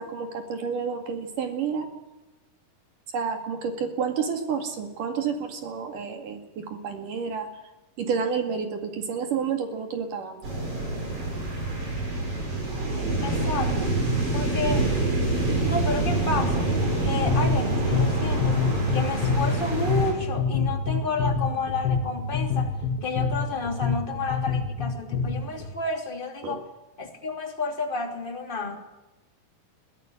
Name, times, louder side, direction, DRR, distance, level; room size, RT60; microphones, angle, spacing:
voice 1, 0.0-1.9 3.1-7.5 8.0-10.5 26.4-26.6, right 6 dB, 65° right, 5 dB, 3.7 m, -30 dB
sound 1, 10.4-20.1, right 2 dB, 40° right, 8.1 m, -26 dB
voice 2, 13.2-13.9 14.3-14.8 15.6-16.7 17.0-18.6 18.9-22.7 23.0-26.6 27.0-28.8, left 3 dB, 15° left, 3 dB, 2.8 m, -31 dB
sound 2, 17.3-25.7, left 4 dB, 90° left, 3.8 m, -27 dB
22.5 x 15.5 x 9.8 m, 1.0 s
omnidirectional pair, 4.2 m